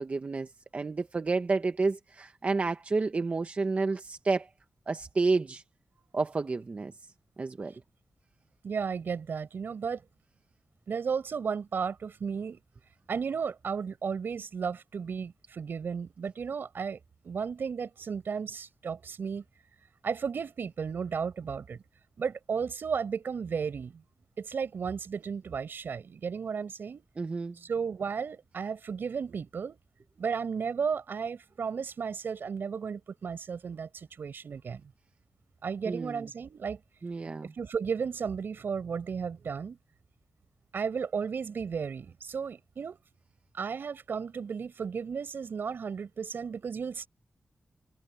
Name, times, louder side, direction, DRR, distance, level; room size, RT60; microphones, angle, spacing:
voice 1, 0.0-4.5 4.9-5.6 6.1-6.9 7.4-7.7 27.2-27.6 35.9-36.2 37.0-37.5, right 3 dB, 40° right, 1.0 m, -30 dB
voice 2, 8.6-10.0 10.9-12.6 13.1-17.0 17.2-19.4 20.0-21.8 22.2-24.0 24.4-27.1 27.6-29.8 30.2-34.9 35.6-36.8 37.6-39.8 40.7-43.0 43.5-47.1, right 6 dB, 75° right, 5.5 m, -34 dB
wide cardioid pair, 130°, 4 cm